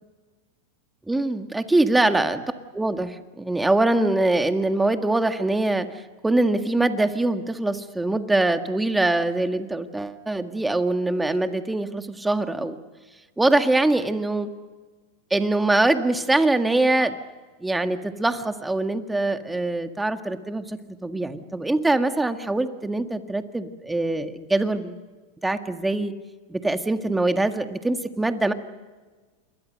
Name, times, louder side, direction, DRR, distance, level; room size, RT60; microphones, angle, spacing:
voice 1, 1.1-2.4 2.7-5.9 6.2-12.8 13.4-14.5 15.3-17.2 17.6-25.0 25.4-26.1 26.5-28.5, right 2 dB, 5° right, 7 dB, 1.8 m, -23 dB
28.5 x 23.0 x 6.6 m, 1.3 s
supercardioid pair, 125°, 0 cm